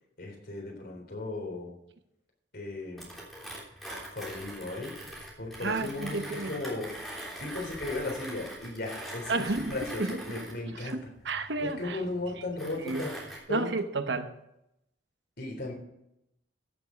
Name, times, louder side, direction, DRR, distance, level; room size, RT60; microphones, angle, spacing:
voice 1, 0.2-1.7 2.5-3.1 4.1-5.0 5.4-6.9 7.4-11.0 11.6-13.2 13.5-13.7 15.4-15.7, left 2 dB, 55° left, 0 dB, 3.8 m, -36 dB
Mechanisms, 3.0-13.4, right 1 dB, ahead, 3.3 m, -43 dB
voice 2, 5.6-6.5 9.3-9.7 10.0-10.2 10.8-12.0 12.8-13.0 13.5-14.3, right 3 dB, 65° right, 9 dB, 0.9 m, -31 dB
15.0 x 7.2 x 5.2 m, 0.82 s
head